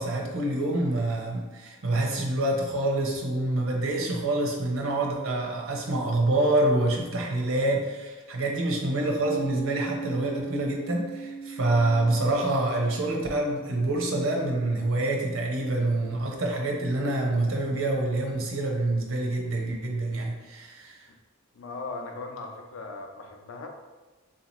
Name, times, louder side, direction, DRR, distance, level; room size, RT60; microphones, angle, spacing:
voice 1, 0.0-21.0, right 2 dB, 85° right, 0 dB, 0.7 m, -26 dB
Piano, 9.2-16.4, right 4 dB, 20° left, 0.7 m, -40 dB
voice 2, 21.5-23.7, left 3 dB, 75° left, 3 dB, 0.5 m, -38 dB
3.6 x 2.8 x 3.0 m, 1.2 s
head